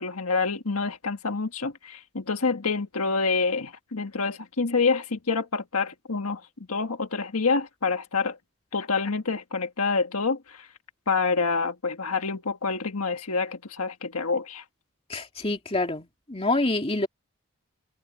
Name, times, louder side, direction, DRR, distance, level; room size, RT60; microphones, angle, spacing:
voice 1, 0.0-6.4 6.7-8.4 8.7-10.7 11.1-14.6, left 4 dB, 85° left, 1.6 m, -27 dB
voice 2, 15.1-17.1, left 2 dB, 25° left, 2.7 m, -27 dB
head